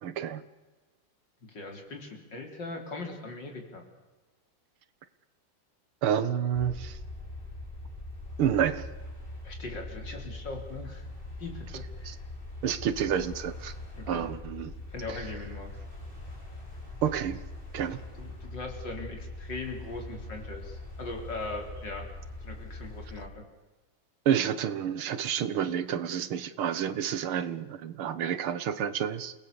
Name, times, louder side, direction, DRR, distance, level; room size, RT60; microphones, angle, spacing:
voice 1, 0.0-0.4 6.0-7.0 8.4-8.9 12.1-12.2 12.6-13.7 14.1-14.7 15.1-15.2 17.0-17.4 17.7-18.0 24.3-29.3, right 9 dB, 80° right, 14 dB, 2.1 m, -29 dB
voice 2, 1.5-3.8 9.4-11.0 11.4-12.2 13.9-14.3 14.9-15.7 18.2-22.1 22.4-23.4, left 3 dB, 55° left, 3 dB, 4.6 m, -40 dB
sound 1, 6.5-23.3, left 2 dB, 25° left, 5.2 m, -42 dB
29.5 x 19.5 x 7.0 m, 1.2 s
omnidirectional pair, 2.3 m